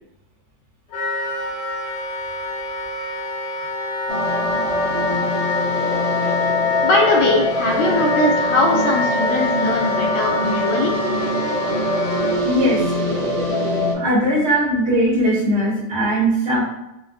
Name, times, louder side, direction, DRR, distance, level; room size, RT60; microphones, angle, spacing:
Wind instrument woodwind instrument, 0.9-12.4, left 2 dB, 60° left, 1.5 m, -25 dB
sound 1, 4.1-13.9, left 1 dB, 70° right, 1.3 m, -23 dB
voice 1, 6.8-10.9, left 1 dB, 80° left, -1 dB, 1.7 m, -20 dB
voice 2, 12.4-12.8 13.9-16.6, equal, 55° right, -9 dB, 1.1 m, -19 dB
5.1 x 2.2 x 2.3 m, 0.89 s
omnidirectional pair, 3.4 m